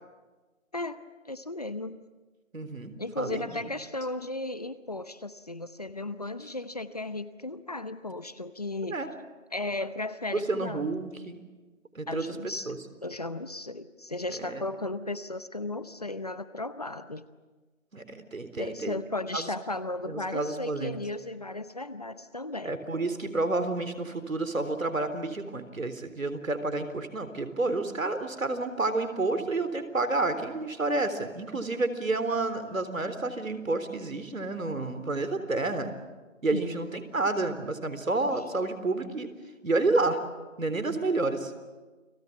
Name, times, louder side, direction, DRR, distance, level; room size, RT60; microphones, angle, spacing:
voice 1, 0.7-2.0 3.0-9.0 9.5-10.8 12.1-12.7 13.0-17.2 18.6-22.7 36.5-36.8, left 2 dB, 30° left, 13 dB, 0.8 m, -35 dB
voice 2, 2.5-3.6 8.9-9.1 10.3-11.4 11.9-12.3 12.7-12.8 14.4-14.6 17.9-18.9 19.3-19.5 20.1-21.0 22.6-35.9 36.4-39.3 39.6-40.2 40.6-41.5, right 2 dB, 90° right, 10 dB, 3.9 m, -30 dB
30.0 x 20.0 x 8.6 m, 1.3 s
figure-of-eight pair, 170°, 39 cm